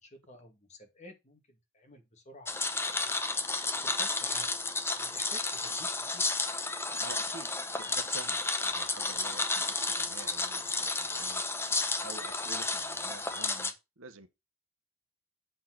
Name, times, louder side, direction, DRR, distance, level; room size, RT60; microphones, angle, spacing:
voice 1, 0.0-2.5 2.8-3.1 3.6-4.5 5.0-6.2, left 1 dB, 35° left, 2.1 m, -52 dB
sound 1, 2.5-13.7, left 3 dB, 10° left, 0.8 m, -32 dB
voice 2, 7.0-11.4 11.7-14.3, right 4 dB, 70° right, 1.1 m, -48 dB
7.5 x 4.6 x 6.0 m
head